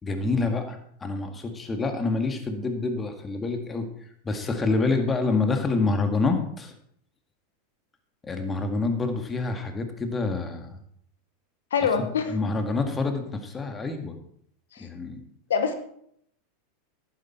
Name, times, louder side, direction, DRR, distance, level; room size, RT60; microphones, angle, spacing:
voice 1, 0.0-3.9 4.2-6.7 8.2-10.8 12.0-14.2 14.8-15.2, left 3 dB, 20° left, 5 dB, 1.9 m, -27 dB
voice 2, 11.7-12.4 14.7-14.9 15.5-15.7, left 6 dB, 85° left, 8 dB, 1.1 m, -24 dB
11.0 x 9.7 x 4.4 m, 0.68 s
hypercardioid pair, 100°, 0 cm